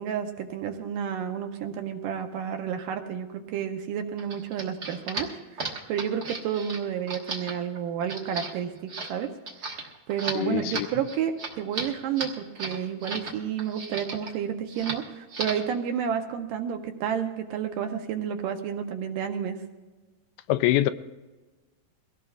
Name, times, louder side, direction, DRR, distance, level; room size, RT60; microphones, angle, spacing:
voice 1, 0.0-5.3 5.6-9.3 10.1-19.6, right 8 dB, 75° right, 6 dB, 2.2 m, -31 dB
sound 1, 4.2-13.3 13.6-14.3 14.7-15.0 15.3-15.7, right 3 dB, 50° right, 1.2 m, -35 dB
voice 2, 10.3-10.9 20.5-20.9, left 15 dB, 85° left, 12 dB, 2.5 m, -24 dB
23.0 x 18.0 x 2.4 m, 1.3 s
omnidirectional pair, 4.3 m